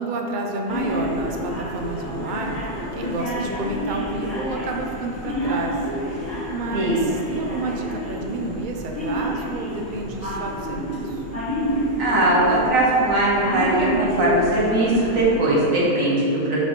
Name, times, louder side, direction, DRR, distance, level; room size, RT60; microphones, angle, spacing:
voice 1, 0.0-2.6 2.9-5.8 6.5-11.2, right 2 dB, 55° right, 1 dB, 0.6 m, -30 dB
sound 1, 0.7-15.4, equal, 10° left, 1.3 m, -28 dB
voice 2, 6.7-7.1 12.0-16.6, right 2 dB, 75° right, -6 dB, 1.7 m, -20 dB
5.1 x 3.5 x 5.7 m, 2.6 s
omnidirectional pair, 1.4 m